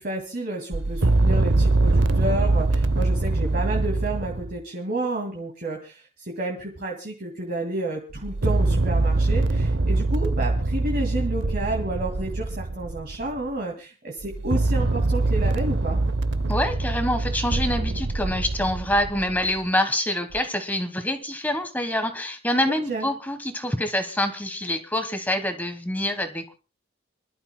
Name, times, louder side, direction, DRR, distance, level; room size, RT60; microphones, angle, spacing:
voice 1, 0.0-16.0 22.7-23.1, right 2 dB, 45° right, 0 dB, 2.2 m, -31 dB
sound 1, 0.7-4.6 8.1-13.5 14.2-19.6 20.3-20.4, right 2 dB, 65° right, 0.7 m, -23 dB
voice 2, 16.5-26.5, left 1 dB, 10° left, 8 dB, 1.2 m, -26 dB
28.5 x 12.0 x 2.2 m, 0.33 s
head